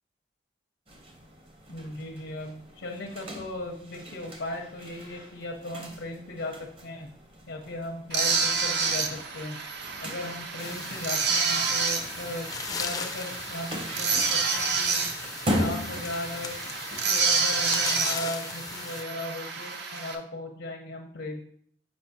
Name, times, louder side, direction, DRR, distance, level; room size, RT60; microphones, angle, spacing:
sound 1, 0.9-17.0, equal, 30° right, 0.7 m, -39 dB
voice 1, 1.7-6.6 6.8-7.1 7.5-9.6 10.0-15.1 15.6-16.6 17.0-21.4, left 1 dB, 80° left, 1 dB, 0.7 m, -37 dB
sound 2, 8.1-20.1, right 5 dB, 65° right, 0.6 m, -29 dB
sound 3, 10.6-19.0, left 5 dB, 20° left, 0.4 m, -38 dB
7.0 x 5.0 x 2.7 m, 0.65 s
head